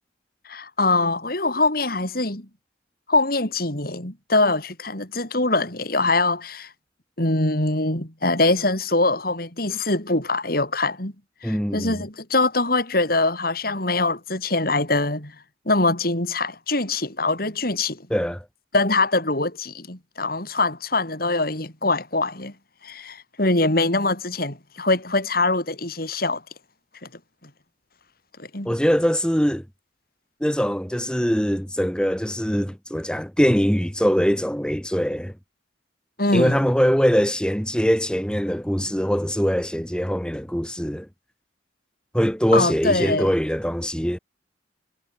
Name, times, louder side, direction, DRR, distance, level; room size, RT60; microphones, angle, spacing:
voice 1, 0.5-2.5 3.1-6.7 7.2-11.1 11.4-15.3 15.7-18.0 18.7-22.5 22.8-26.4 28.4-28.8 36.2-36.6 42.5-43.3, left 2 dB, 55° left, 5.7 m, -23 dB
voice 2, 11.4-12.0 18.1-18.5 28.7-29.6 30.4-35.3 36.3-41.1 42.1-44.2, equal, 5° left, 5.4 m, -22 dB
head